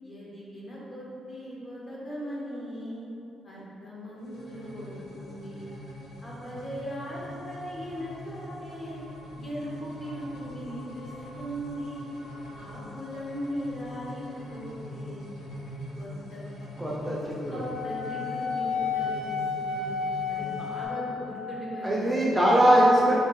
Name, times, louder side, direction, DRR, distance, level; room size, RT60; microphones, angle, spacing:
voice 1, 0.0-3.1 3.4-5.7 6.2-9.0 9.3-12.1 12.5-15.2 16.0-16.9 17.5-19.9 20.3-22.4, equal, 35° left, -6 dB, 1.1 m, -38 dB
sound 1, 4.2-20.9, left 1 dB, 75° left, 0.9 m, -43 dB
voice 2, 16.8-17.5 21.8-23.2, equal, 5° right, -6 dB, 0.5 m, -21 dB
Wind instrument woodwind instrument, 17.5-21.7, left 5 dB, 80° right, 0.4 m, -32 dB
4.5 x 2.6 x 3.0 m, 2.9 s
cardioid pair, 110°, 0 cm